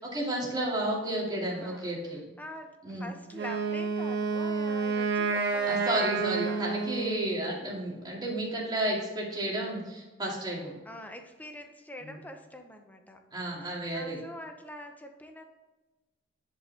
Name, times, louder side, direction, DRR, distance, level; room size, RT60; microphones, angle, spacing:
voice 1, 0.0-2.2 2.8-3.1 5.7-10.7 12.0-12.1 13.3-14.2, right 1 dB, 20° right, -4 dB, 2.3 m, -32 dB
voice 2, 1.5-1.9 2.4-6.1 6.5-6.8 10.8-13.2 13.6-15.4, left 1 dB, 10° left, 4 dB, 0.8 m, -45 dB
Wind instrument woodwind instrument, 3.3-7.5, right 4 dB, 55° right, 1.3 m, -29 dB
10.0 x 5.5 x 3.4 m, 1.1 s
head